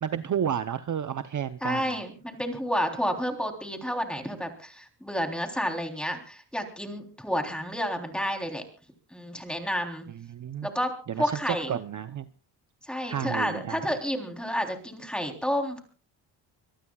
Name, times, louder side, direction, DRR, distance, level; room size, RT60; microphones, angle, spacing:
voice 1, 0.0-2.0 10.1-10.7 11.1-12.3 13.1-13.9, right 9 dB, 45° right, 11 dB, 0.8 m, -31 dB
voice 2, 1.6-8.6 9.1-10.1 10.6-11.7 12.8-15.8, equal, ahead, 4 dB, 3.5 m, -30 dB
25.5 x 18.5 x 2.4 m, 0.38 s
cardioid pair, 115°, 44 cm